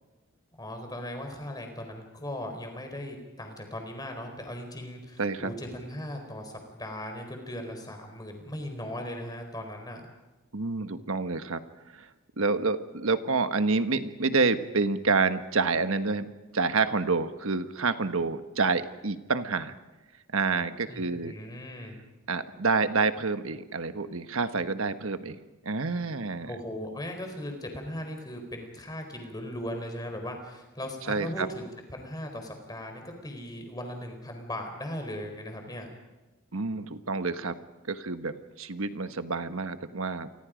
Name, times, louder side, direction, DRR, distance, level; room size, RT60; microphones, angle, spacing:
voice 1, 0.6-10.0 20.9-22.0 26.5-35.9, left 1 dB, 15° left, 4 dB, 4.3 m, -38 dB
voice 2, 5.2-5.5 10.5-11.6 11.9-12.1 12.4-16.3 16.5-19.7 20.3-21.3 22.3-25.4 25.6-26.5 31.1-31.5 36.5-37.6 37.9-40.3, right 4 dB, 70° right, 10 dB, 1.3 m, -28 dB
29.5 x 24.5 x 5.2 m, 1.1 s
head